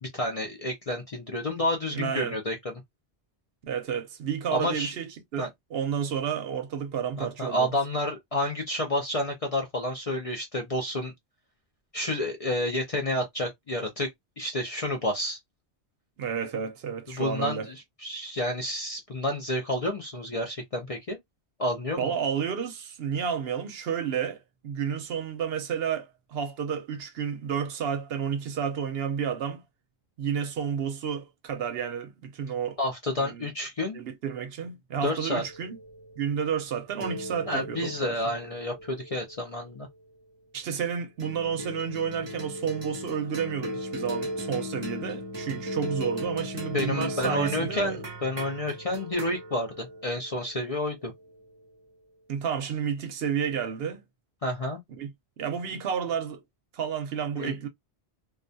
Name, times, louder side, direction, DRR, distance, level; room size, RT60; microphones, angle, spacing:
voice 1, 0.0-2.7 4.5-4.9 5.4-5.5 7.2-11.1 11.9-15.4 17.1-21.2 21.6-22.1 32.8-34.0 35.0-35.4 37.5-39.9 46.7-51.1 54.4-54.8 57.3-57.5, left 1 dB, 45° left, 0.4 m, -30 dB
voice 2, 1.9-2.4 3.6-7.7 16.2-17.7 22.0-29.6 30.2-32.8 33.2-33.5 33.9-35.8 36.2-38.2 40.5-48.0 52.3-54.0 54.9-55.1 55.4-56.4 56.7-57.7, right 7 dB, 65° right, 0.8 m, -31 dB
sound 1, 35.4-40.0 41.2-51.7, equal, 30° right, 0.6 m, -38 dB
2.3 x 2.2 x 2.5 m
omnidirectional pair, 1.1 m